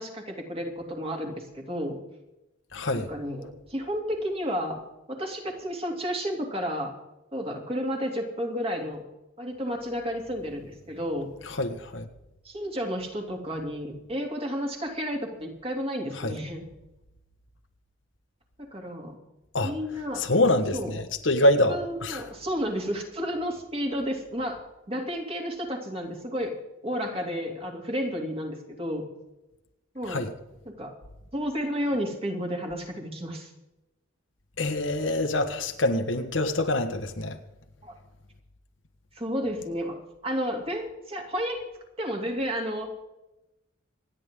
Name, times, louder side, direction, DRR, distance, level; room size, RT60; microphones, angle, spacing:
voice 1, 0.0-2.0 2.9-4.8 5.1-7.0 7.3-9.0 9.4-11.3 12.4-16.7 18.6-19.2 19.6-20.3 20.7-21.0 21.7-26.5 26.8-29.0 29.9-30.3 30.6-30.9 31.3-33.5 37.8-37.9 39.1-41.6 42.0-43.1, equal, 30° right, 3.0 m, -32 dB
voice 2, 2.7-3.1 11.6-12.1 16.2-16.3 19.5-19.7 20.2-22.2 30.1-30.3 34.6-37.4, left 1 dB, 80° left, 1.5 m, -25 dB
27.0 x 10.0 x 3.8 m
head